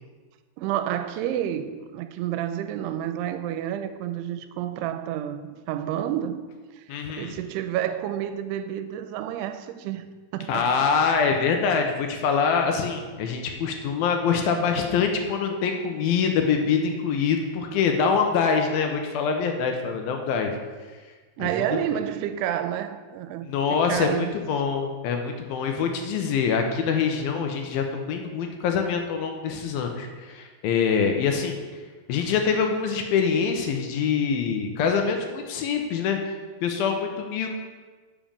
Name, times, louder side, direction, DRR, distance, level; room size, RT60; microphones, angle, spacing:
voice 1, 0.6-6.4 6.8-6.9 7.2-10.1 10.3-10.7 21.4-24.3, right 11 dB, 90° right, 2.6 m, -29 dB
voice 2, 6.9-7.3 10.5-20.5 21.4-21.7 23.4-31.6 32.1-36.2 36.6-37.5, left 6 dB, 75° left, 2.4 m, -24 dB
7.2 x 5.2 x 7.3 m
omnidirectional pair, 4.6 m